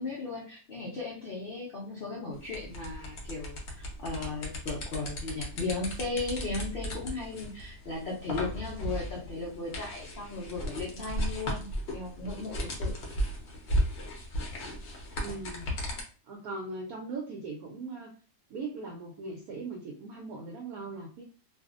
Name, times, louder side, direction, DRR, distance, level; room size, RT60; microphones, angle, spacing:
voice 1, 0.0-12.9, left 3 dB, 90° left, -3 dB, 0.4 m, -36 dB
sound 1, 2.4-16.0, equal, 55° left, 0.7 m, -36 dB
voice 2, 15.2-15.7 16.3-18.1 18.5-21.2, right 3 dB, 70° right, 0 dB, 1.0 m, -39 dB
2.6 x 2.4 x 2.4 m, 0.39 s
omnidirectional pair, 1.8 m